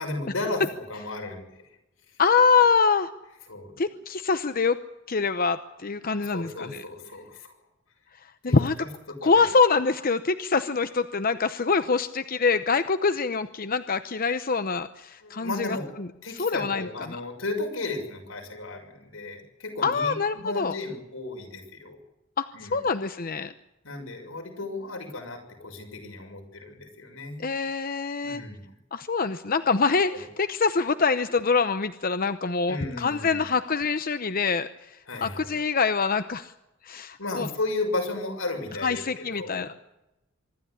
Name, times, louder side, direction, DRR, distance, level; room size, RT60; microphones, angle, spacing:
voice 1, 0.0-1.4 3.5-3.7 6.3-7.5 8.4-8.9 9.2-9.4 15.2-15.9 16.2-22.0 22.5-22.8 23.8-27.4 28.2-28.7 30.1-30.2 32.6-33.4 35.1-35.5 37.2-39.6, left 2 dB, 90° left, 3 dB, 6.6 m, -34 dB
voice 2, 2.2-3.1 3.8-4.8 5.1-6.8 8.4-8.8 9.2-17.2 19.8-20.8 22.4-23.5 27.4-28.4 28.9-36.5 36.8-37.5 38.8-39.7, left 4 dB, 45° left, 11 dB, 0.8 m, -25 dB
24.5 x 12.5 x 9.8 m, 0.90 s
head